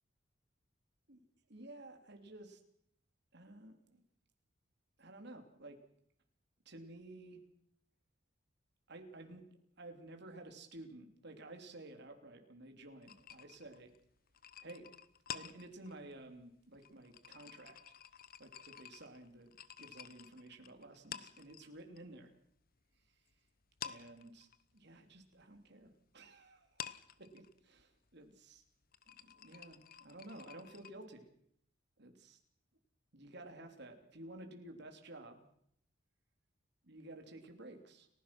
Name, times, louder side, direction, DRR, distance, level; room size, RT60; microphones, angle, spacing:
voice 1, 1.5-2.6 3.3-4.0 5.0-5.8 6.7-7.4 8.9-9.5 9.8-13.9 14.6-14.9 15.3-17.9 18.4-22.3 23.8-26.8 27.2-28.6 29.2-31.3 32.0-32.4 33.1-35.4 36.8-38.1, right 2 dB, 60° right, 4 dB, 3.5 m, -53 dB
sound 1, 13.0-22.0 22.3-23.3 23.6-30.9, left 8 dB, 50° left, 1.0 m, -51 dB
30.0 x 16.0 x 6.2 m, 0.71 s
head